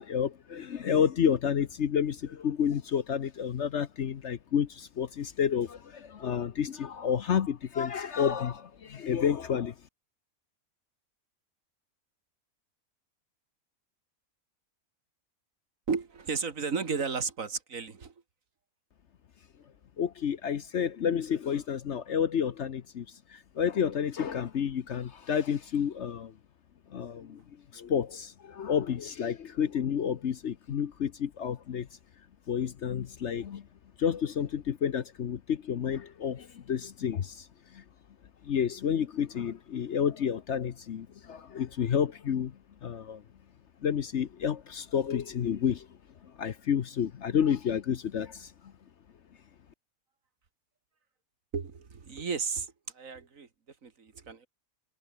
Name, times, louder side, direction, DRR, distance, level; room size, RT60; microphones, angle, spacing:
voice 1, 0.0-9.7 20.0-26.3 26.9-27.4 27.7-31.9 32.5-33.6 34.0-37.5 37.7-37.8 38.4-42.5 42.8-43.2 43.8-45.9 46.4-48.5, left 8 dB, 55° left, 1.0 m, -30 dB
voice 2, 15.9-18.1 51.5-53.5 53.8-54.5, right 5 dB, 60° right, 2.3 m, -33 dB
omnidirectional pair, 1.6 m